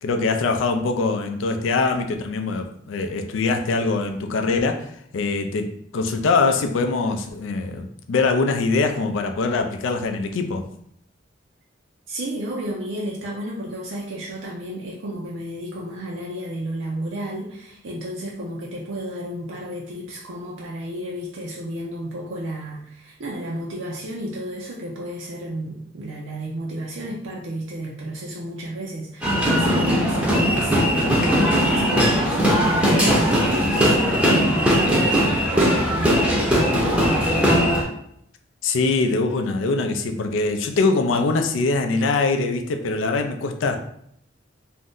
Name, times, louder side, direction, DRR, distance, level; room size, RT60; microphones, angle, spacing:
voice 1, 0.0-10.6 38.6-43.8, left 3 dB, 85° left, 5 dB, 0.4 m, -23 dB
voice 2, 12.1-37.7, right 1 dB, 75° right, -3 dB, 0.5 m, -32 dB
sound 1, 29.2-37.8, equal, 5° right, 0.5 m, -19 dB
2.6 x 2.1 x 3.6 m, 0.71 s
head